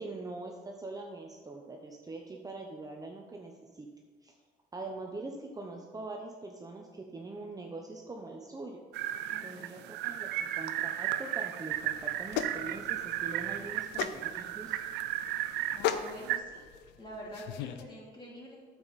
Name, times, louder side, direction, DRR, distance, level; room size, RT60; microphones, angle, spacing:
voice 1, 0.0-3.9 4.2-4.3 4.7-8.8 9.4-14.8, right 3 dB, 20° right, 1 dB, 0.8 m, -43 dB
sound 1, 8.9-16.4, right 13 dB, 85° right, 0.5 m, -34 dB
voice 2, 9.3-9.8 15.7-16.7 17.0-18.8, equal, 25° left, -4 dB, 3.1 m, -47 dB
sound 2, 11.7-17.8, left 10 dB, 85° left, 0.6 m, -38 dB
9.2 x 7.2 x 4.2 m, 1.5 s
cardioid pair, 110°, 17 cm